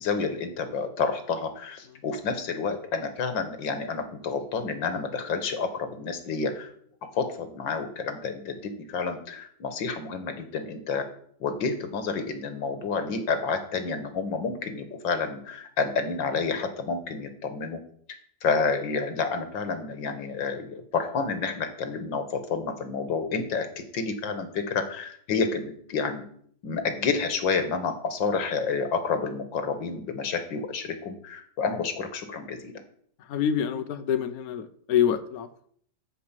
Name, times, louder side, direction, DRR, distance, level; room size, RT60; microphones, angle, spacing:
voice 1, 0.0-6.7 7.1-11.1 11.4-17.8 18.4-26.2 26.6-32.8, left 5 dB, 85° left, 8 dB, 2.2 m, -29 dB
voice 2, 33.3-35.5, left 9 dB, 60° left, 8 dB, 1.2 m, -26 dB
13.5 x 4.7 x 7.5 m, 0.62 s
omnidirectional pair, 2.0 m